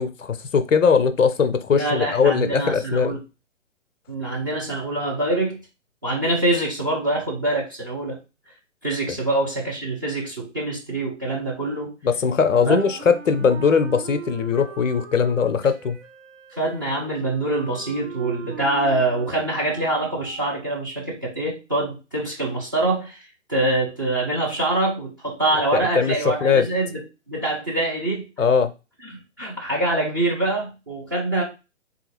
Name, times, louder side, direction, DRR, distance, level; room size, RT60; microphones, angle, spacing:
voice 1, 0.0-3.2 12.0-16.0 25.7-26.1 26.4-26.7 28.4-28.7, left 6 dB, 80° left, 0.5 m, -20 dB
voice 2, 1.7-3.2 4.1-5.6 6.0-8.2 8.8-11.9 12.6-12.8 16.6-28.3 29.0-31.4, right 2 dB, 20° right, 0.4 m, -25 dB
Wind instrument woodwind instrument, 12.4-20.7, right 7 dB, 80° right, 0.7 m, -40 dB
3.7 x 2.4 x 2.8 m
figure-of-eight pair, 125°, 37 cm